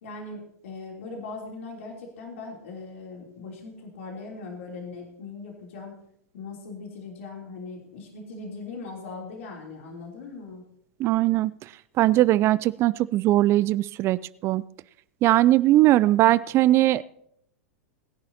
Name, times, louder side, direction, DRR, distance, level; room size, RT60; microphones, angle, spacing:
voice 1, 0.0-6.0 6.3-10.6, left 3 dB, 65° left, 0 dB, 3.2 m, -39 dB
voice 2, 11.0-11.7 12.0-14.6 15.2-17.0, right 15 dB, 35° right, 19 dB, 0.4 m, -20 dB
20.0 x 10.5 x 2.9 m, 0.70 s
hypercardioid pair, 100°, 8 cm